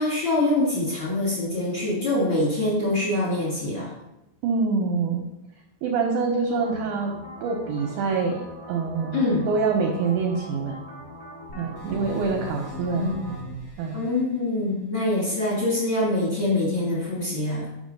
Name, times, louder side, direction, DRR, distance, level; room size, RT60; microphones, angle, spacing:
voice 1, 0.0-3.9 9.1-9.4 12.9-13.4 13.9-17.7, left 2 dB, 40° left, -7 dB, 1.9 m, -24 dB
voice 2, 4.4-5.3 5.8-7.2 7.4-8.4 8.7-10.8 11.6-13.1 13.8-14.0, right 4 dB, 75° right, 2 dB, 1.9 m, -25 dB
sound 1, 6.5-13.3, left 1 dB, 85° left, 0.6 m, -42 dB
sound 2, 11.5-14.2, right 2 dB, 60° left, 1.6 m, -39 dB
5.4 x 4.5 x 5.2 m, 0.89 s
omnidirectional pair, 4.2 m